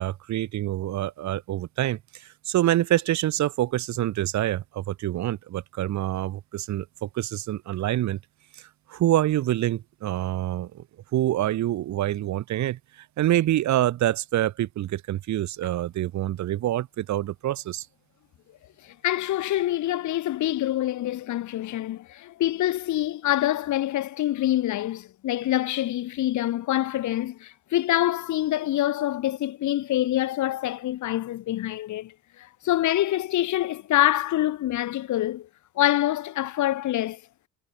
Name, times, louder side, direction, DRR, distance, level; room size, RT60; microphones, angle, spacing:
voice 1, 0.0-8.2 8.9-10.8 11.1-12.8 13.2-17.9, right 13 dB, 65° right, 0.9 m, -26 dB
voice 2, 18.8-35.5 35.8-37.2, left 14 dB, 75° left, 1.2 m, -26 dB
cardioid pair, 90°, 30 cm